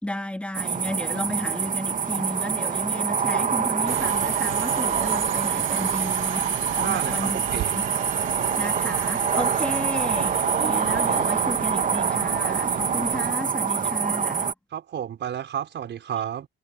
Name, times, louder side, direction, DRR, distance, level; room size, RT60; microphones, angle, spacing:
voice 1, 0.0-7.9 8.6-14.5, left 1 dB, 5° left, 2.0 m, -33 dB
sound 1, 0.5-14.5, right 6 dB, 40° right, 1.6 m, -25 dB
Subway metro underground, 3.9-13.3, right 14 dB, 85° right, 0.9 m, -34 dB
voice 2, 6.8-7.8 14.7-16.5, right 9 dB, 65° right, 5.4 m, -31 dB
cardioid pair, 90°, 20 cm